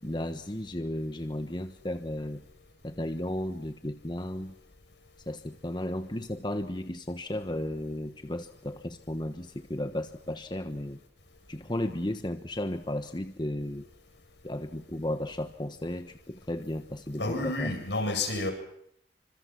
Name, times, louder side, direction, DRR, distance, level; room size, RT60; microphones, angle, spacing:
voice 1, 0.0-2.4 2.8-4.5 5.3-11.0 11.5-13.9 14.4-17.7, left 1 dB, 25° left, 8 dB, 1.2 m, -34 dB
voice 2, 17.2-18.5, left 2 dB, 70° left, 5 dB, 8.0 m, -30 dB
28.0 x 26.0 x 6.1 m, 0.72 s
head